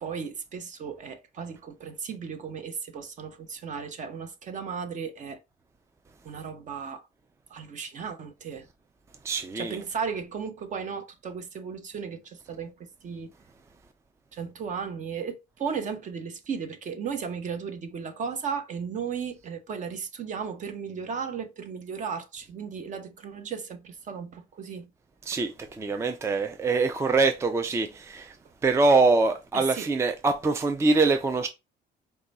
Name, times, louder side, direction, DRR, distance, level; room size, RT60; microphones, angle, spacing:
voice 1, 0.0-5.4 6.2-7.1 7.5-8.7 9.5-13.3 14.3-24.9 29.5-29.9, right 6 dB, 50° right, 0.9 m, -35 dB
voice 2, 9.2-9.8 25.3-28.4 28.6-31.5, right 3 dB, 15° right, 0.4 m, -24 dB
4.8 x 2.3 x 4.0 m
cardioid pair, 110°, 17 cm